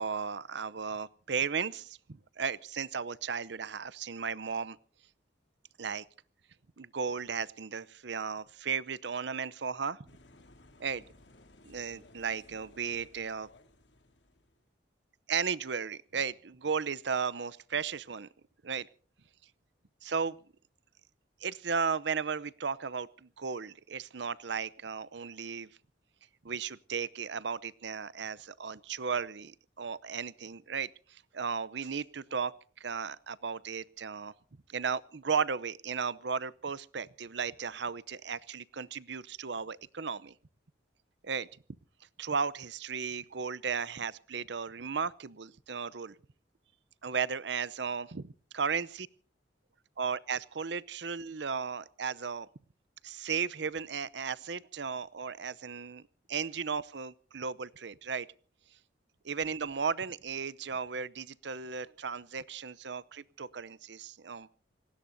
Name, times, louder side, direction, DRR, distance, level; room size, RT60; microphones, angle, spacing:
voice 1, 0.0-4.8 5.8-6.0 6.8-10.0 10.8-11.0 11.6-13.5 15.3-18.3 18.6-18.9 20.0-20.4 21.4-25.7 26.4-34.3 34.7-40.3 41.2-41.5 42.2-46.1 47.0-49.1 50.0-52.5 53.0-58.3 59.2-64.5, right 6 dB, 65° right, 19 dB, 0.7 m, -35 dB
sound 1, 10.1-14.7, left 2 dB, 70° left, 2.8 m, -59 dB
28.0 x 19.0 x 2.7 m, 0.42 s
head